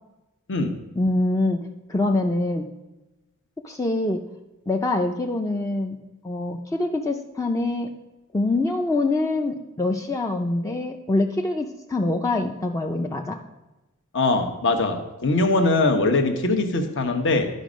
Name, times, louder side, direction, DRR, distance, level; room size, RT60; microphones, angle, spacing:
voice 1, 1.0-1.6 1.9-2.7 3.6-4.2 4.7-6.0 6.2-7.9 8.3-13.4, left 2 dB, 15° left, 3 dB, 0.4 m, -24 dB
voice 2, 14.1-17.5, left 2 dB, 60° left, 5 dB, 1.1 m, -21 dB
11.5 x 5.3 x 5.1 m, 1.0 s
head